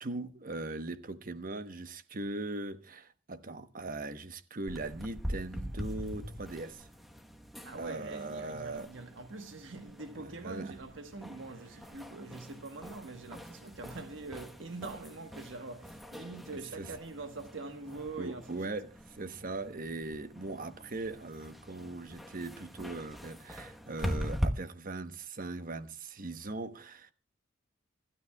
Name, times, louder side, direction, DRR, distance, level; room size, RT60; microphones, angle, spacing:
voice 1, 0.0-6.9 7.8-8.9 10.1-10.7 16.8-16.9 18.2-27.1, right 2 dB, 45° right, 1.1 m, -40 dB
sound 1, 4.7-24.5, equal, ahead, 1.1 m, -42 dB
voice 2, 7.6-18.5, right 3 dB, 85° right, 1.3 m, -44 dB
26.0 x 12.5 x 2.3 m
head